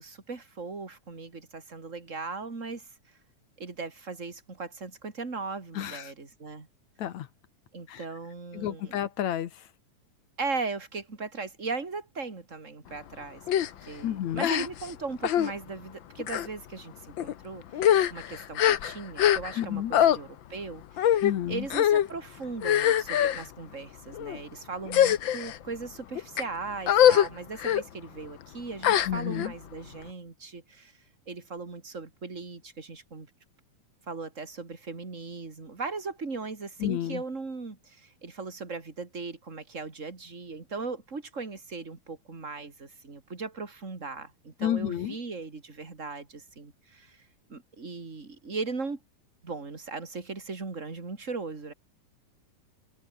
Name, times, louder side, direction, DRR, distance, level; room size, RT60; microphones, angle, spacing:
voice 1, 0.0-2.9 3.6-6.7 7.7-9.0 10.4-13.4 13.8-21.2 21.5-30.9 31.3-33.3 34.1-49.0 49.4-51.7, right 4 dB, 25° right, 3.1 m, -38 dB
voice 2, 5.7-6.1 7.0-7.3 7.9-8.1 8.5-9.7 14.0-14.5 19.6-19.9 21.2-21.7 29.1-29.5 36.8-37.2 44.6-45.2, left 11 dB, 65° left, 2.4 m, -31 dB
sound 1, 13.5-13.7 14.4-14.9 15.2-15.5 16.2-16.5 17.2-17.3 17.7-19.6 19.9-20.2 21.0-21.3 21.7-22.1 22.6-23.4 24.1-24.4 24.9-25.6 26.1-26.4 26.9-27.3 27.6-27.8 28.8-29.5, left 10 dB, 85° left, 1.0 m, -23 dB
omnidirectional pair, 3.8 m